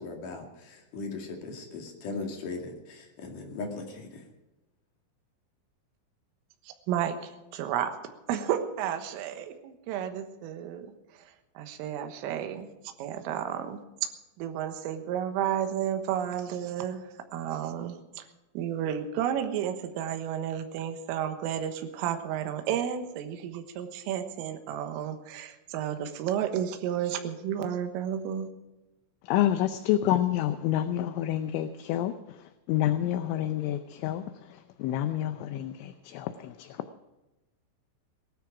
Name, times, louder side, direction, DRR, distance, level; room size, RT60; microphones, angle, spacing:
voice 1, 0.0-4.2, left 3 dB, 50° left, 3.0 m, -38 dB
voice 2, 6.9-7.9 8.3-10.9 11.6-12.7 13.0-13.8 14.4-17.1 17.3-18.2 18.6-28.5, right 9 dB, 80° right, 3.8 m, -32 dB
voice 3, 29.2-36.9, left 12 dB, 80° left, 2.9 m, -29 dB
18.5 x 13.0 x 4.9 m
omnidirectional pair, 5.9 m